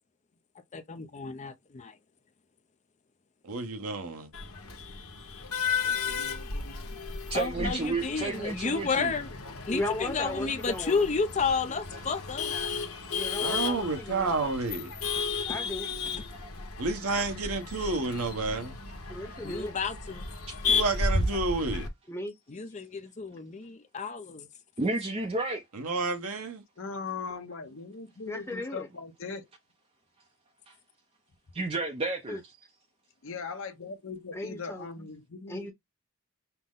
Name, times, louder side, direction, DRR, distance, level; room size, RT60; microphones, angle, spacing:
voice 1, 0.7-1.9 7.3-9.3 9.7-12.6 15.5-15.7 16.1-16.2 19.4-20.2 22.5-24.5, left 4 dB, 35° left, 0.5 m, -31 dB
voice 2, 3.4-4.3 13.4-14.9 16.8-18.8 20.7-21.9 25.7-26.6, right 3 dB, 90° right, 1.1 m, -30 dB
Male speech man speaking / Laughter / Chatter, 4.3-21.9, left 4 dB, 80° left, 1.1 m, -34 dB
voice 3, 5.8-7.0 26.8-29.5 33.2-35.7, left 4 dB, 65° left, 0.8 m, -40 dB
voice 4, 7.3-9.1 15.3-15.4 16.3-16.4 20.4-20.6 24.8-25.6 30.7-30.8 31.5-32.4, right 3 dB, 25° right, 0.5 m, -31 dB
voice 5, 9.7-11.1 13.1-14.3 15.5-15.9 19.1-19.7 22.1-22.3 28.3-28.9 32.3-32.4 34.3-34.8 35.5-35.7, left 1 dB, 10° left, 0.9 m, -36 dB
5.8 x 2.1 x 3.7 m
head